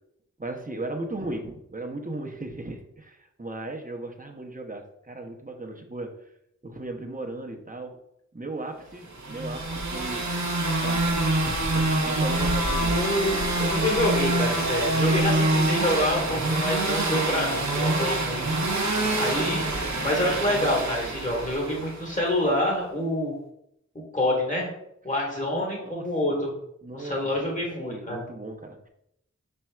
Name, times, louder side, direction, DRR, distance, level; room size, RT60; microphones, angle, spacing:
voice 1, 0.4-6.3 6.6-8.0 8.3-10.3 10.8-13.0 18.9-20.2 25.4-26.4 26.8-28.9, right 2 dB, 30° right, 2 dB, 0.7 m, -37 dB
sound 1, 9.2-22.1, right 2 dB, 70° right, 0.7 m, -26 dB
voice 2, 12.9-19.6 20.0-23.3 23.9-24.7 25.0-26.5 26.9-28.2, left 1 dB, 25° left, -3 dB, 1.6 m, -27 dB
5.4 x 4.3 x 2.3 m, 0.77 s
wide cardioid pair, 45°, 30 cm